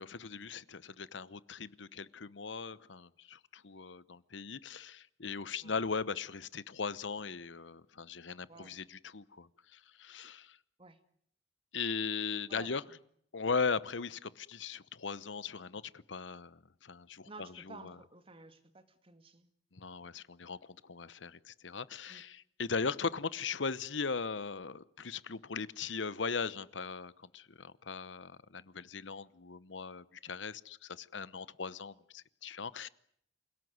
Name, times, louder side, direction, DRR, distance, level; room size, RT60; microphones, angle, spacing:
voice 1, 0.0-10.6 11.7-12.8 13.3-17.3 17.7-17.8 19.7-32.9, left 5 dB, 80° left, 0.9 m, -39 dB
voice 2, 8.5-8.8 10.8-11.0 12.5-13.0 17.2-19.5 22.1-22.2, right 3 dB, 30° right, 2.1 m, -53 dB
28.0 x 17.5 x 9.5 m
head